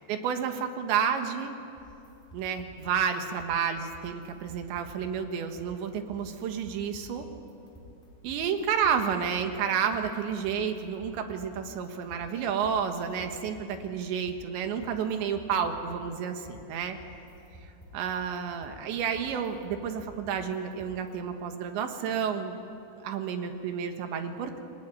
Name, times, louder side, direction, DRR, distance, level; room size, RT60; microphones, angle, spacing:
voice 1, 0.1-1.6 2.3-7.3 8.2-17.0 17.9-22.6 23.0-24.6, right 7 dB, 75° right, 6 dB, 3.8 m, -30 dB
sound 1, 1.8-21.3, equal, ahead, 5.4 m, -52 dB
30.0 x 22.0 x 9.0 m, 2.7 s
omnidirectional pair, 5.2 m